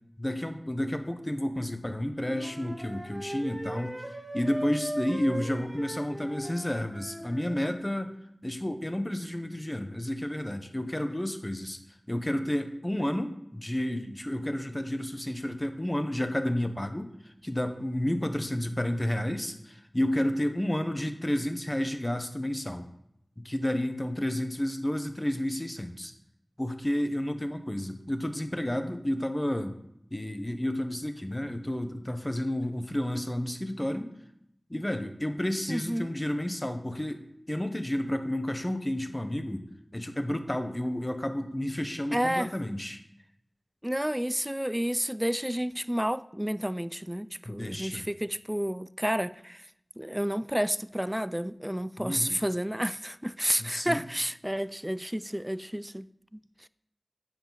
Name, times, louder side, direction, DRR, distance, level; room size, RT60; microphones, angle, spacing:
voice 1, 0.2-4.0 4.3-8.1 8.4-11.8 12.1-22.8 23.4-26.1 26.6-29.8 30.1-34.1 34.7-39.6 39.9-43.0 47.4-48.0 52.0-52.4 53.6-54.0, left 1 dB, 25° left, 1.0 m, -31 dB
Wind instrument woodwind instrument, 2.1-7.7, right 1 dB, 35° right, 2.0 m, -39 dB
voice 2, 35.7-36.1 42.1-42.5 43.8-49.7 50.0-56.1 56.6-56.7, equal, 10° right, 0.3 m, -30 dB
9.8 x 7.3 x 4.0 m
wide cardioid pair, 50°, 0 cm